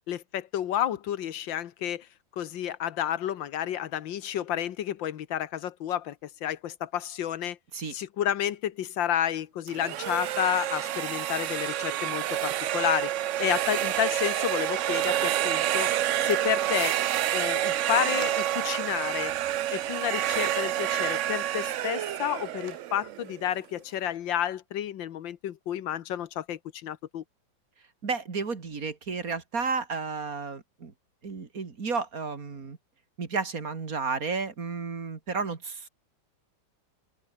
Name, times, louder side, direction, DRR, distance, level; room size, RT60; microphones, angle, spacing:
voice 1, 0.1-2.1 2.4-6.2 6.4-7.6 7.9-13.1 13.4-15.9 16.2-17.0 17.3-19.3 19.7-27.2, left 11 dB, 80° left, 1.8 m, -30 dB
sound 1, 9.7-23.5, right 12 dB, 85° right, 0.6 m, -28 dB
voice 2, 28.0-30.9 31.2-32.8 33.2-35.9, right 4 dB, 50° right, 2.6 m, -32 dB
open air
omnidirectional pair, 2.0 m